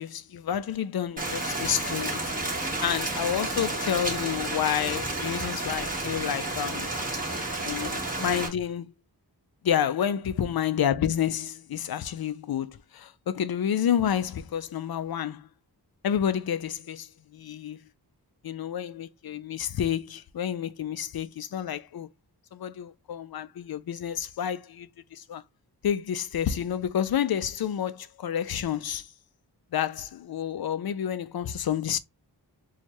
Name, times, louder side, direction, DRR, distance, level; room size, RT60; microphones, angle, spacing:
voice 1, 0.0-6.9 7.6-8.9 9.6-15.5 16.0-17.8 18.4-22.1 22.5-25.4 25.8-29.1 29.7-32.0, left 9 dB, 60° left, 0.5 m, -29 dB
Rain, 1.2-8.5, right 2 dB, 20° right, 1.3 m, -31 dB
4.4 x 2.4 x 2.9 m
wide cardioid pair, 70°, 42 cm